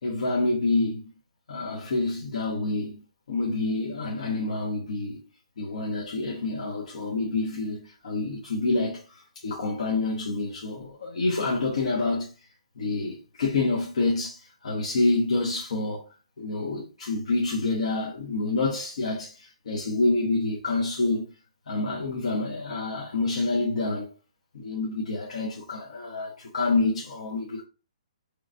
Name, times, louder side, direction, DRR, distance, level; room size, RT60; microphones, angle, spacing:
voice 1, 0.0-1.0 1.5-3.0 3.3-5.2 5.6-12.3 12.8-16.0 16.4-21.3 21.7-24.1 24.5-27.6, left 3 dB, 65° left, 1.1 m, -27 dB
4.8 x 3.1 x 2.6 m
hypercardioid pair, 170°, 4 cm